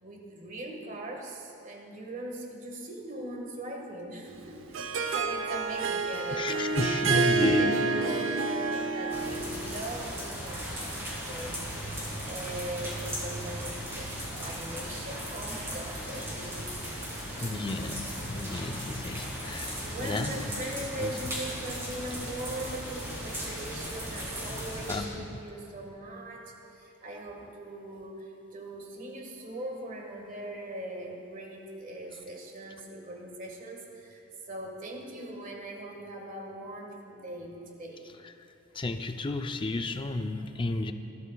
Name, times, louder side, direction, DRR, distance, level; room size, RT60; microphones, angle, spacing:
voice 1, 0.0-6.5 6.9-16.8 19.8-26.4 26.8-28.3 28.5-34.2 34.5-38.1, right 1 dB, 40° right, 1 dB, 1.6 m, -40 dB
Harp, 4.3-9.7, right 4 dB, 70° right, 0.7 m, -28 dB
voice 2, 6.4-7.8 17.4-20.4 21.0-21.1 24.9-25.3 38.7-40.9, left 2 dB, 25° left, 7 dB, 0.5 m, -32 dB
sound 1, 9.1-25.0, equal, 10° right, 2.9 m, -37 dB
21.5 x 12.5 x 2.3 m, 3.0 s
head